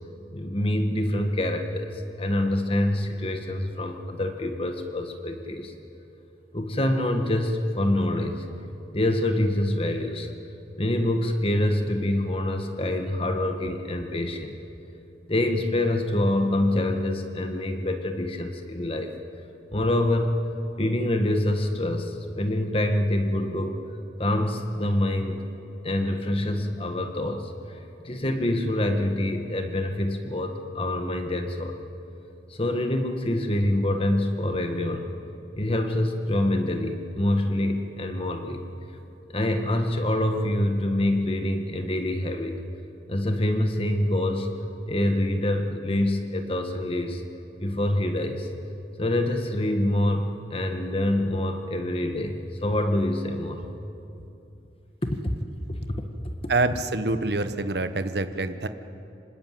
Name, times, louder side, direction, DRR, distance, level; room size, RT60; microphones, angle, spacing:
voice 1, 0.3-5.7 6.5-8.4 8.9-10.3 10.8-14.6 15.3-19.1 19.7-20.4 20.8-23.8 24.2-25.4 25.8-31.8 32.5-35.1 35.6-38.6 39.3-42.6 43.1-44.6 44.9-47.2 47.6-48.5 49.0-53.6 55.0-55.4 55.7-56.1, left 1 dB, 30° left, 5 dB, 1.5 m, -26 dB
voice 2, 56.5-58.7, right 2 dB, 65° right, 10 dB, 1.1 m, -26 dB
25.5 x 19.5 x 9.3 m, 2.8 s
head